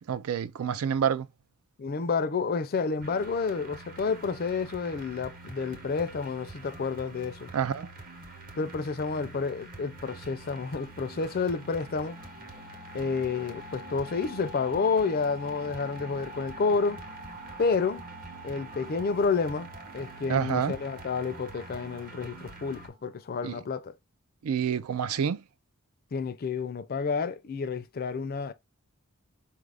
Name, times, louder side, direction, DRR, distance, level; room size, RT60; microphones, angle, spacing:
voice 1, 0.1-1.3 7.5-7.9 20.3-20.7 23.4-23.6 24.4-25.4, right 7 dB, 80° right, 0.4 m, -28 dB
voice 2, 1.8-7.5 8.6-12.2 12.9-17.0 17.6-18.0 18.4-23.9 26.1-28.5, left 5 dB, 45° left, 0.4 m, -30 dB
sound 1, 3.0-22.9, right 2 dB, 40° right, 0.9 m, -46 dB
sound 2, 9.8-23.3, equal, 10° right, 0.5 m, -47 dB
4.6 x 2.5 x 3.3 m
head